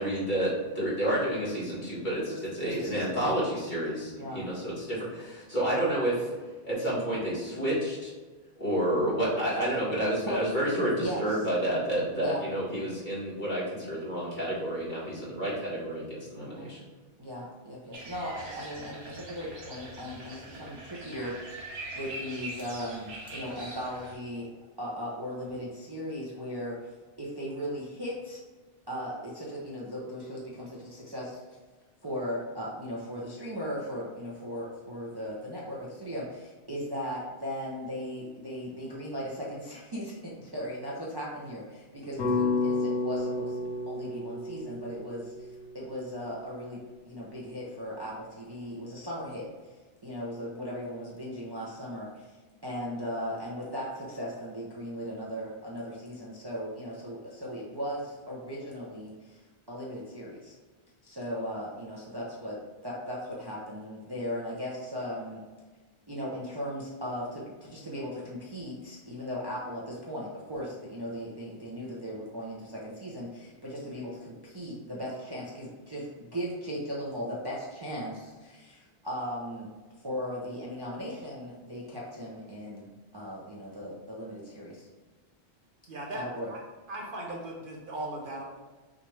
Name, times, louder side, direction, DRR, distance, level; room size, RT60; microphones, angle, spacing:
voice 1, 0.0-6.3 6.6-8.1 8.6-16.8, right 1 dB, 50° left, -8 dB, 1.8 m, -30 dB
voice 2, 2.3-3.4 4.2-4.4 10.3-10.5 11.0-11.5 12.1-12.4 16.3-16.7 17.2-21.6 21.9-24.5 24.8-26.9 27.2-28.4 28.9-31.4 32.0-49.8 50.0-60.6 61.0-65.4 66.1-79.7 80.0-84.9 86.1-86.5, equal, 25° right, -6 dB, 0.6 m, -37 dB
sound 1, 17.9-24.1, right 1 dB, 70° right, 1.3 m, -43 dB
sound 2, 42.2-46.5, left 3 dB, 90° left, 1.1 m, -31 dB
voice 3, 85.9-86.2 86.5-86.6 86.9-88.4, right 1 dB, 55° right, -1 dB, 0.9 m, -37 dB
5.8 x 2.5 x 3.2 m, 1.3 s
omnidirectional pair, 1.1 m